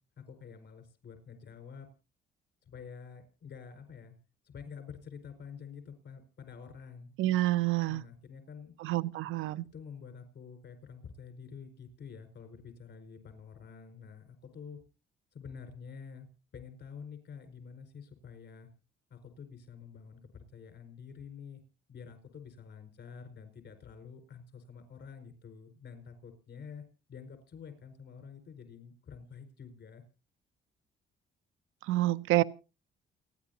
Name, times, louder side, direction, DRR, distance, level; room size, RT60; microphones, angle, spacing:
voice 1, 0.2-1.9 2.6-4.2 4.4-7.1 7.9-8.7 9.7-14.8 15.3-18.7 19.1-21.6 21.9-26.8 27.1-30.0, left 6 dB, 65° left, 5.1 m, -48 dB
voice 2, 7.2-8.0 8.8-9.7 31.9-32.4, right 16 dB, 90° right, 0.6 m, -28 dB
29.0 x 10.0 x 2.8 m
cardioid pair, 90°, 20 cm